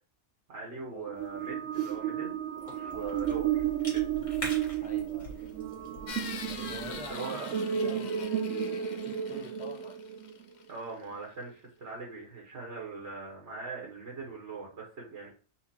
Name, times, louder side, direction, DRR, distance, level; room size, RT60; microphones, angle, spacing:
voice 1, 0.5-2.3 2.9-3.6 3.9-4.0 6.9-7.5 10.7-15.3, right 4 dB, 60° right, -3 dB, 1.3 m, -41 dB
sound 1, 1.0-10.4, right 9 dB, 80° right, 1.0 m, -33 dB
Cough / Chewing mastication, 1.2-7.1, equal, 25° left, 1.4 m, -45 dB
voice 2, 2.9-3.2 4.8-5.4 6.4-10.0, left 1 dB, 10° right, 0 dB, 0.5 m, -47 dB
sound 2, 6.1-10.8, left 6 dB, 65° left, 0.4 m, -44 dB
4.3 x 2.4 x 4.2 m, 0.37 s
omnidirectional pair, 1.3 m